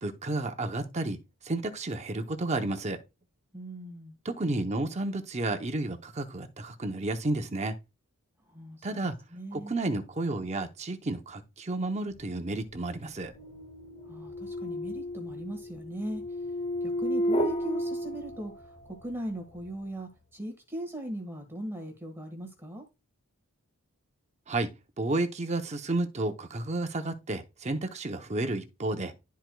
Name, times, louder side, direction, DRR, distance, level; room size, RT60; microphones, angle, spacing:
voice 1, 0.0-1.2 1.4-3.0 4.2-7.7 8.8-9.2 9.5-13.3 24.5-24.7 25.0-29.1, right 2 dB, 30° right, 0.7 m, -31 dB
voice 2, 3.5-4.2 8.5-9.7 14.1-16.2 16.8-22.8, right 1 dB, 10° right, 1.5 m, -39 dB
sound 1, 12.4-18.9, equal, 30° left, 1.0 m, -33 dB
12.0 x 4.6 x 2.2 m
head